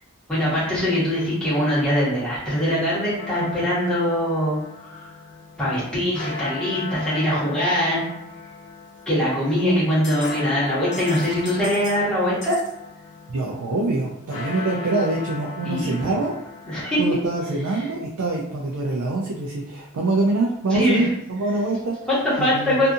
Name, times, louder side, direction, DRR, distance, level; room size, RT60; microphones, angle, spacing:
voice 1, 0.3-5.0 5.6-8.0 9.1-12.6 15.6-16.2 16.7-17.0 20.7-21.1 22.1-22.9, equal, 5° left, -11 dB, 1.2 m, -22 dB
sound 1, 3.2-18.1, left 4 dB, 70° left, 0.7 m, -38 dB
sound 2, 9.0-9.1 10.0-10.4 10.7-12.0 12.4-12.7, left 4 dB, 35° left, 0.8 m, -39 dB
voice 2, 13.3-16.3 16.7-22.0 22.4-22.8, right 2 dB, 80° right, -1 dB, 0.4 m, -25 dB
2.6 x 2.5 x 2.4 m, 0.78 s
head